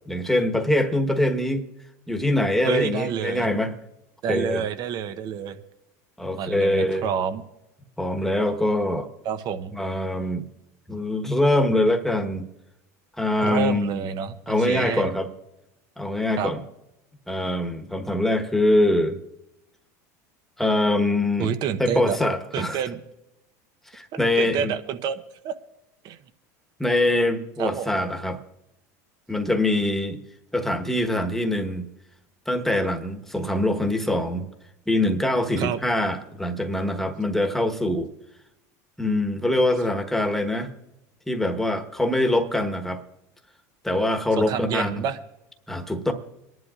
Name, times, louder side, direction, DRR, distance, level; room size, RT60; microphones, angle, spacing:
voice 1, 0.1-1.6 2.1-3.7 4.3-4.6 6.2-7.1 8.0-9.1 9.7-10.4 10.9-12.5 13.2-14.0 14.5-15.3 16.0-16.6 17.3-19.2 20.6-21.5 21.8-22.8 23.9-24.7 26.8-28.4 29.3-30.2 30.5-31.8 32.5-34.4 34.9-38.1 39.0-40.7 41.3-43.0 43.8-45.0 45.7-46.1, left 1 dB, 5° left, 4 dB, 1.2 m, -23 dB
voice 2, 2.6-3.5 4.2-5.6 6.3-7.4 9.2-9.8 13.4-15.1 16.4-16.5 21.4-22.2 22.5-23.0 24.4-25.5 26.0-26.2 27.6-27.9 35.6-35.8 44.4-45.2, right 8 dB, 50° right, 11 dB, 0.9 m, -28 dB
25.5 x 11.0 x 2.5 m, 0.90 s
supercardioid pair, 110°, 9 cm